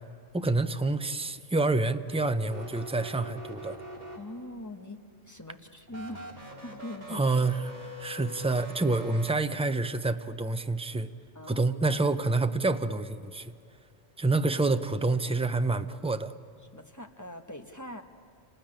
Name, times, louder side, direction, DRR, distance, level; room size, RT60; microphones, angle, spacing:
voice 1, 0.3-3.8 7.1-7.7 8.0-11.1 11.5-13.5 14.2-16.3, right 3 dB, 10° right, 9 dB, 0.4 m, -27 dB
sound 1, 2.4-4.6 5.9-9.3, right 1 dB, 40° right, 2.7 m, -43 dB
voice 2, 4.1-6.3 6.6-7.3 11.3-11.8 16.7-18.0, left 1 dB, 15° left, 5 dB, 1.1 m, -42 dB
28.0 x 19.0 x 8.9 m, 2.5 s
omnidirectional pair, 1.2 m